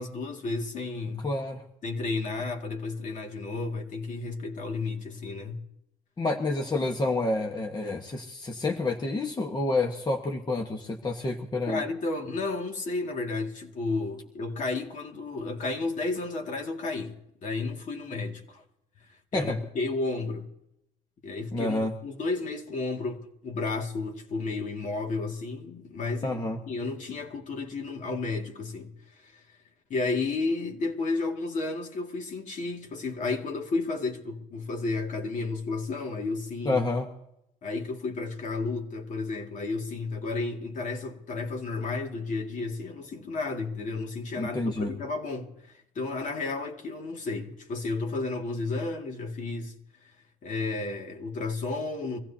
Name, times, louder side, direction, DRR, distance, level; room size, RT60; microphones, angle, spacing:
voice 1, 0.0-1.3 1.8-5.6 11.6-17.2 17.4-18.6 19.3-20.5 21.2-26.4 26.7-29.4 29.9-36.8 37.6-49.7 50.4-52.2, left 3 dB, 50° left, 2.3 m, -32 dB
voice 2, 1.2-1.6 6.2-11.8 19.3-19.6 21.5-21.9 26.2-26.6 36.6-37.1 44.4-44.9, left 2 dB, 25° left, 1.4 m, -29 dB
24.5 x 15.5 x 2.9 m
cardioid pair, 110°, 17 cm